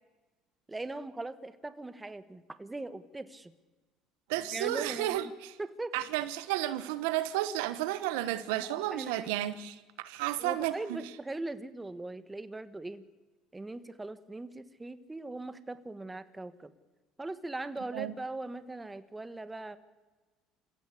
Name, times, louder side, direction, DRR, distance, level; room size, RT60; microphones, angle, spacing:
voice 1, 0.7-3.5 4.5-5.3 5.6-6.0 8.6-9.5 10.4-13.1 13.5-16.7 17.2-19.8, right 2 dB, 15° right, 1.4 m, -40 dB
voice 2, 4.3-5.3 5.9-11.0 17.9-18.1, right 14 dB, 85° right, 1.3 m, -32 dB
28.0 x 16.0 x 8.5 m
supercardioid pair, 105°, 0 cm